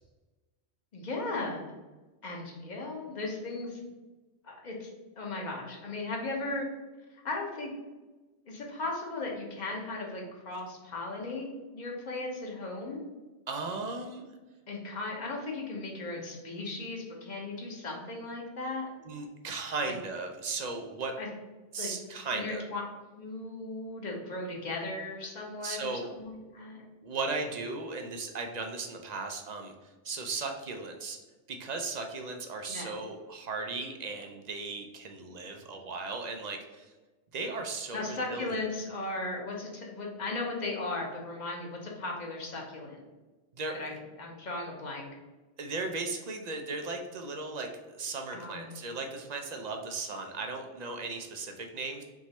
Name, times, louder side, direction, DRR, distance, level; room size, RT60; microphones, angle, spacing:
voice 1, 0.9-1.7 2.2-3.8 4.4-4.9 5.2-6.6 7.2-7.7 8.5-13.0 14.7-18.9 19.9-20.0 21.2-21.3 21.8-21.9 22.3-22.8 23.2-26.9 32.7-32.9 37.9-43.0 43.7-43.9 44.2-45.1 48.3-48.7, left 2 dB, 40° left, 0 dB, 0.9 m, -37 dB
voice 2, 13.5-14.2 19.0-21.1 21.7-22.6 25.6-26.1 27.0-29.7 30.0-31.2 31.5-36.9 37.3-38.7 43.5-43.7 45.6-52.0, right 3 dB, 50° right, 4 dB, 0.5 m, -36 dB
3.6 x 3.0 x 4.1 m, 1.2 s
omnidirectional pair, 1.2 m